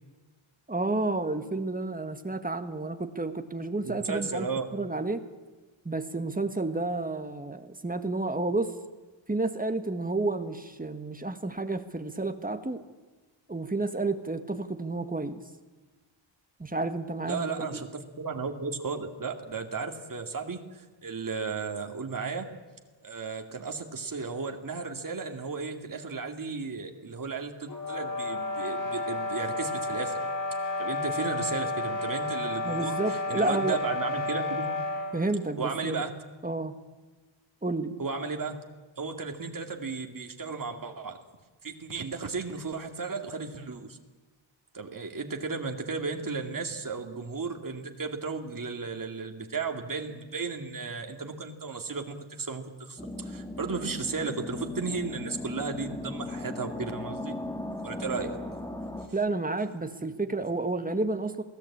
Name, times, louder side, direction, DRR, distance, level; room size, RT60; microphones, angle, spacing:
voice 1, 0.7-4.5 4.7-5.2 5.8-8.7 9.3-12.8 13.5-15.4 16.6-17.8 32.6-33.8 35.1-36.1 36.4-36.8 37.6-37.9 59.1-61.4, right 2 dB, 20° right, 8 dB, 1.6 m, -30 dB
voice 2, 3.8-4.8 17.3-22.5 23.0-30.2 30.8-34.7 35.6-36.1 38.0-38.6 39.0-41.2 41.6-44.0 44.7-57.3 57.8-58.4, right 4 dB, 45° right, 4 dB, 2.3 m, -34 dB
sound 1, 27.7-35.2, left 2 dB, 40° left, 4.7 m, -31 dB
sound 2, 53.0-59.1, left 1 dB, 10° left, 2.1 m, -37 dB
27.5 x 18.0 x 8.6 m, 1.3 s
wide cardioid pair, 120°, 47 cm